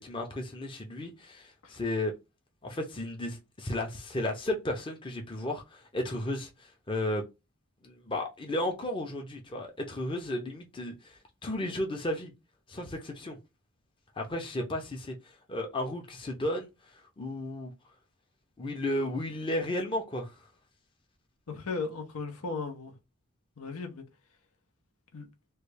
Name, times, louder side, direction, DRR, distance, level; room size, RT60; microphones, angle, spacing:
voice 1, 0.0-2.1 2.6-7.2 7.8-12.3 12.7-13.4 14.2-17.7 18.6-20.4, left 1 dB, 20° left, 0.6 m, -34 dB
voice 2, 21.5-23.0 23.6-24.0 25.1-25.3, left 4 dB, 85° left, 0.8 m, -36 dB
3.2 x 2.3 x 3.2 m
head